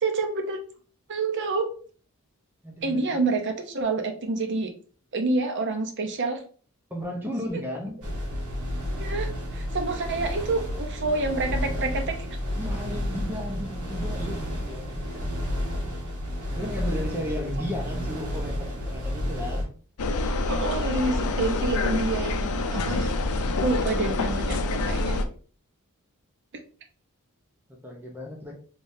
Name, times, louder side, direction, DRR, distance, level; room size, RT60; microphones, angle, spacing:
voice 1, 0.0-0.6 1.1-1.7 2.8-4.7 5.1-6.4 8.9-12.1 20.5-23.1 23.6-25.2, right 3 dB, 55° right, 5 dB, 0.7 m, -28 dB
voice 2, 2.6-3.2 6.9-8.0 12.6-15.4 16.5-19.7 27.8-28.5, left 1 dB, 10° right, -1 dB, 0.8 m, -35 dB
sound 1, 8.0-19.6, equal, 90° right, 1.6 m, -31 dB
sound 2, 20.0-25.2, left 2 dB, 80° left, 0.5 m, -26 dB
3.5 x 3.4 x 2.7 m, 0.42 s
head